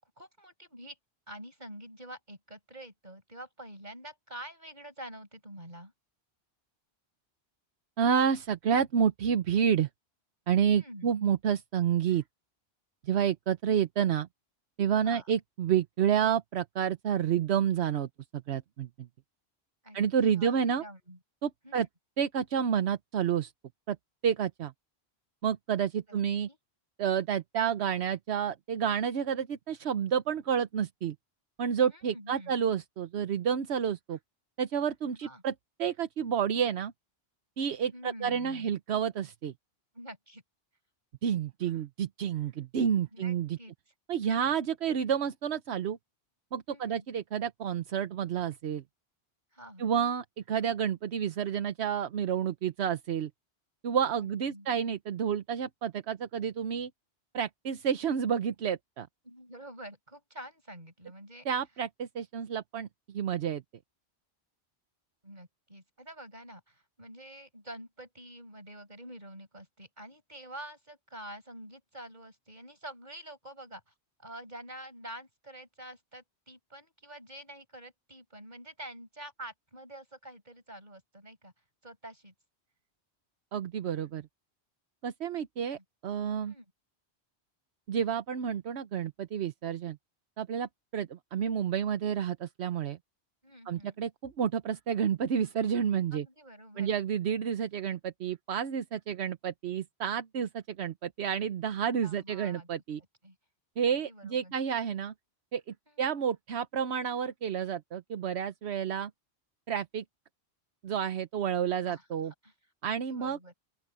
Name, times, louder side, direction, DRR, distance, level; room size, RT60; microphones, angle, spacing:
voice 1, 0.2-1.0 1.3-5.9 10.7-11.1 15.0-15.3 19.8-20.0 20.3-21.2 21.6-21.9 26.5-26.6 31.9-32.5 35.1-35.4 37.9-38.7 39.9-40.4 42.8-43.7 46.7-47.1 49.5-49.9 54.2-54.7 59.2-61.5 65.2-73.9 74.2-81.5 81.8-82.3 85.3-85.4 85.7-85.8 86.5-86.7 93.4-94.0 96.1-96.9 101.9-102.8 103.2-103.4 103.9-104.5 106.0-106.1 111.8-112.5 112.8-113.5, right 1 dB, 45° right, 6.3 m, -47 dB
voice 2, 8.0-9.9 10.5-12.2 13.0-14.3 14.8-19.1 19.9-20.8 21.4-21.9 22.2-23.5 23.9-24.0 24.2-24.7 25.4-26.5 27.0-31.1 31.6-34.2 34.6-35.5 35.8-36.9 37.6-39.5 41.2-43.6 44.1-46.0 46.5-48.8 49.8-53.3 53.8-56.9 57.3-59.1 61.4-63.6 83.5-84.3 85.0-86.5 87.9-90.0 90.4-93.0 93.7-96.3 96.8-103.0 103.8-105.1 105.5-109.1 109.7-110.0 110.8-112.3 112.8-113.4, right 8 dB, 80° right, 1.1 m, -30 dB
open air
omnidirectional pair, 1.1 m